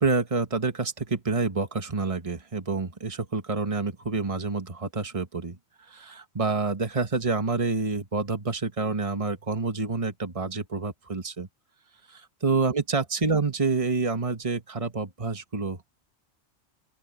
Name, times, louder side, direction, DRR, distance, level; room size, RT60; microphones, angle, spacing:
voice 1, 0.0-5.6 5.9-11.5 12.1-15.9, right 4 dB, 30° right, 1.6 m, -28 dB
open air
omnidirectional pair, 1.1 m